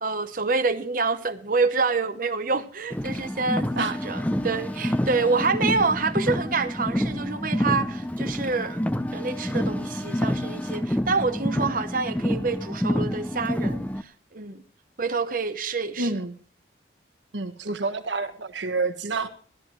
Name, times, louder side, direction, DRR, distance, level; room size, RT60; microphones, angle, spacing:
voice 1, 0.0-8.8 9.1-14.6 15.0-16.1, right 4 dB, 45° right, 0.9 m, -27 dB
Car, 2.9-14.0, equal, 10° left, 0.5 m, -28 dB
voice 2, 16.0-16.3 17.3-19.3, right 3 dB, 70° right, 1.4 m, -28 dB
15.5 x 12.5 x 3.2 m
head